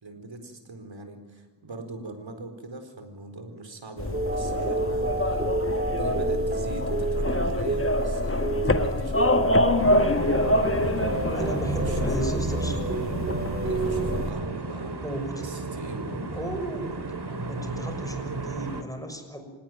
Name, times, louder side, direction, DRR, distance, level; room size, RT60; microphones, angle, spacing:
voice 1, 0.0-9.4 10.7-12.5 12.9-13.3 13.6-15.1 15.4-16.1, right 2 dB, 75° right, 7 dB, 4.5 m, -40 dB
sound 1, 4.0-14.3, left 1 dB, 30° left, 1.6 m, -26 dB
sound 2, 4.1-14.3, right 2 dB, 25° right, 2.3 m, -31 dB
sound 3, 9.8-18.8, right 3 dB, 60° right, 3.0 m, -33 dB
voice 2, 11.3-12.8 15.0-15.6 16.1-17.1 17.4-19.4, equal, 5° left, 6 dB, 6.2 m, -35 dB
26.0 x 19.0 x 9.4 m, 1.3 s
wide cardioid pair, 65°, 45 cm